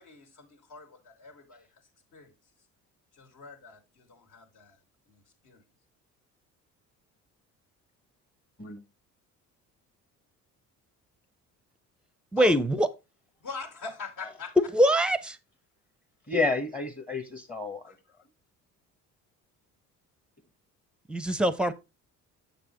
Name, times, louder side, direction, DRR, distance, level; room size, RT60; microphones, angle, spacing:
voice 1, 0.0-1.7 2.1-2.3 3.1-4.8 5.1-5.6 12.4-12.5 13.4-14.6, left 4 dB, 60° left, 2.3 m, -43 dB
voice 2, 12.3-12.9 14.6-15.4 21.1-21.7, equal, 5° right, 0.7 m, -23 dB
voice 3, 16.3-17.9, left 3 dB, 25° left, 1.3 m, -30 dB
7.2 x 6.7 x 3.1 m
supercardioid pair, 80°, 35 cm